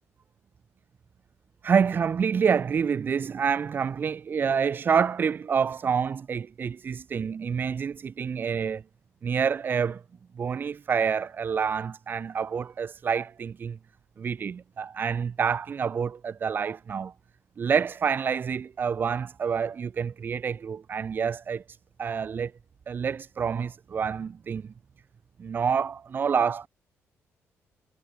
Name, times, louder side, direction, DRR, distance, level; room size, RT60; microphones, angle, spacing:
voice 1, 1.6-8.8 9.2-10.0 10.4-13.8 14.2-17.1 17.6-21.6 22.0-22.5 22.9-24.6 25.4-26.7, right 6 dB, 40° right, 3.7 m, -27 dB
cardioid pair, 140°, 5 cm